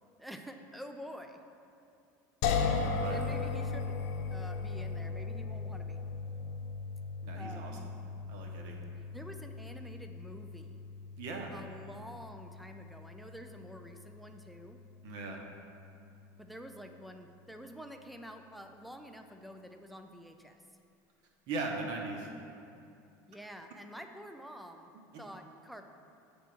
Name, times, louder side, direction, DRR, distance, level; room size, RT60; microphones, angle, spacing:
voice 1, 0.2-1.4 3.1-4.0 4.3-6.0 7.3-7.8 9.1-10.8 11.5-14.8 16.4-20.6 23.3-24.9 25.2-25.8, equal, ahead, 5 dB, 0.3 m, -48 dB
sound 1, 2.4-15.5, left 4 dB, 70° left, 0.7 m, -37 dB
voice 2, 7.2-7.8 8.3-8.8 11.2-11.5 15.0-15.4 21.5-22.3, right 3 dB, 50° right, 1 dB, 1.0 m, -38 dB
8.7 x 3.5 x 6.0 m, 2.6 s
cardioid pair, 170°, 9 cm